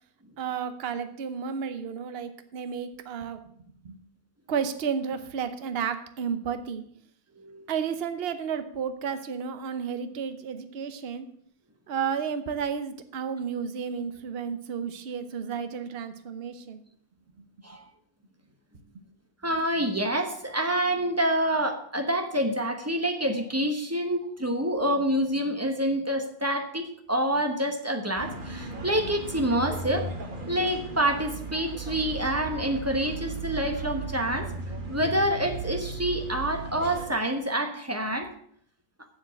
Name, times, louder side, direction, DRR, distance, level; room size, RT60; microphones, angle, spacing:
voice 1, 0.4-3.4 3.8-4.0 4.5-6.8 7.7-11.3 11.9-16.8, right 7 dB, 50° right, 10 dB, 0.7 m, -32 dB
voice 2, 19.4-30.1 30.5-34.5 34.9-38.3, right 1 dB, 15° right, 5 dB, 0.6 m, -27 dB
sound 1, 28.2-37.1, right 3 dB, 30° right, 1.4 m, -36 dB
7.3 x 7.3 x 7.6 m, 0.64 s
omnidirectional pair, 2.0 m